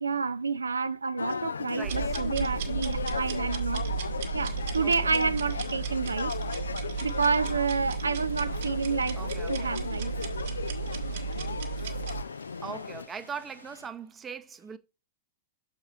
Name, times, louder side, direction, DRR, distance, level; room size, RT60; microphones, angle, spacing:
voice 1, 0.0-3.8 4.3-6.3 7.0-9.2 9.5-10.1, right 4 dB, 75° right, 0.5 m, -29 dB
sound 1, 1.2-13.1, left 5 dB, 70° left, 0.4 m, -36 dB
voice 2, 1.7-2.2 4.8-5.2 9.2-9.8 12.6-14.8, right 6 dB, 15° right, 0.7 m, -40 dB
sound 2, 1.8-12.2, right 6 dB, 55° right, 1.5 m, -34 dB
sound 3, 4.4-13.9, left 1 dB, 90° left, 1.7 m, -52 dB
6.6 x 4.4 x 5.8 m
figure-of-eight pair, 100°, 0 cm